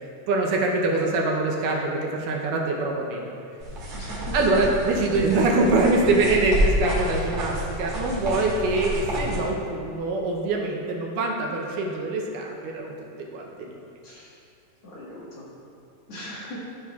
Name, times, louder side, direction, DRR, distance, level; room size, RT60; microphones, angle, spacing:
voice 1, 0.3-3.3 4.3-12.9 13.3-13.7, right 2 dB, 75° right, -1 dB, 2.3 m, -24 dB
sound 1, 3.6-9.4, equal, 55° right, 2.1 m, -29 dB
voice 2, 3.9-4.3 14.0-14.3 14.8-15.4 16.1-16.6, equal, 55° left, -8 dB, 2.4 m, -39 dB
13.5 x 6.0 x 2.4 m, 2.5 s
omnidirectional pair, 3.9 m